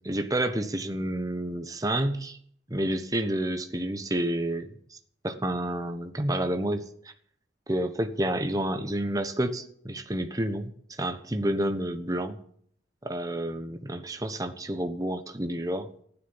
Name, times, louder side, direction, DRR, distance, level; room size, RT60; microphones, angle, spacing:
voice 1, 0.0-2.4 2.7-5.0 5.2-6.9 7.7-12.4 13.0-15.9, right 1 dB, 20° right, 7 dB, 1.1 m, -29 dB
15.0 x 9.9 x 7.3 m, 0.62 s
head